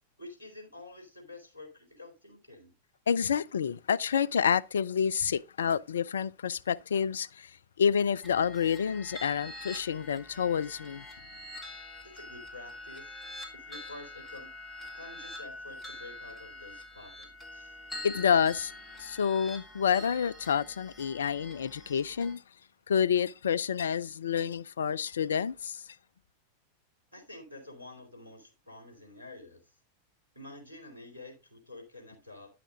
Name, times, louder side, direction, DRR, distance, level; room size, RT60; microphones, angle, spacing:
voice 1, 0.2-2.8 12.0-13.2 13.5-14.5 14.9-17.7 27.1-29.7 30.3-32.5, left 2 dB, 85° right, 3.3 m, -49 dB
voice 2, 3.1-7.5 7.8-11.1 18.0-18.7 19.0-22.4 22.9-25.8, left 7 dB, 65° left, 0.4 m, -28 dB
sound 1, 8.2-22.3, left 1 dB, 10° left, 3.4 m, -45 dB
10.5 x 5.9 x 3.8 m
figure-of-eight pair, 90°, 0 cm